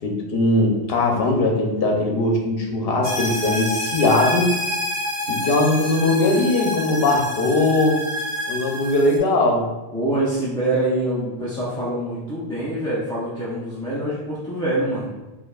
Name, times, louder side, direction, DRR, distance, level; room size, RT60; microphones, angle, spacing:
voice 1, 0.0-4.5 5.3-8.0 8.5-9.7, left 2 dB, 65° left, 0 dB, 0.9 m, -20 dB
sound 1, 3.0-9.2, left 1 dB, 30° right, 1.5 m, -28 dB
voice 2, 9.9-15.1, right 1 dB, 5° left, -10 dB, 0.5 m, -25 dB
4.4 x 2.8 x 2.3 m, 1.1 s
omnidirectional pair, 1.1 m